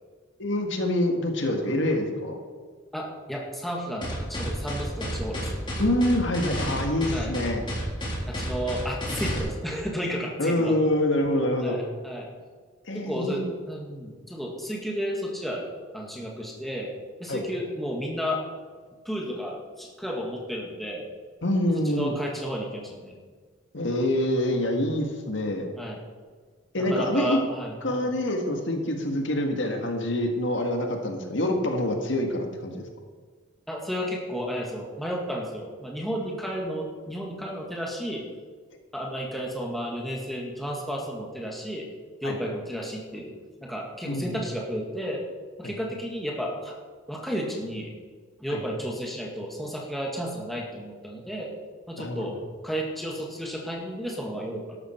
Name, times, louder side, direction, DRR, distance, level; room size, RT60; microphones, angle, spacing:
voice 1, 0.4-2.4 5.8-7.6 10.4-11.8 12.8-13.4 17.3-17.4 21.4-22.1 23.7-25.7 26.7-27.4 27.8-32.9 42.2-42.4 44.0-44.4 45.6-45.7 48.5-48.6 52.0-52.3, left 1 dB, 65° left, 3 dB, 1.7 m, -26 dB
voice 2, 2.9-5.5 7.1-7.3 8.3-10.9 11.6-12.3 12.9-15.6 15.9-16.9 17.2-18.4 19.0-21.0 21.7-23.2 25.7-26.0 26.8-28.1 33.7-38.3 38.9-41.9 42.2-43.3 43.6-45.2 45.6-46.8 47.1-47.9 48.4-51.5 51.9-52.4 52.6-54.8, equal, ahead, -2 dB, 1.9 m, -32 dB
sound 1, 4.0-9.4, equal, 25° left, 3.6 m, -31 dB
12.5 x 12.5 x 4.5 m, 1.5 s
head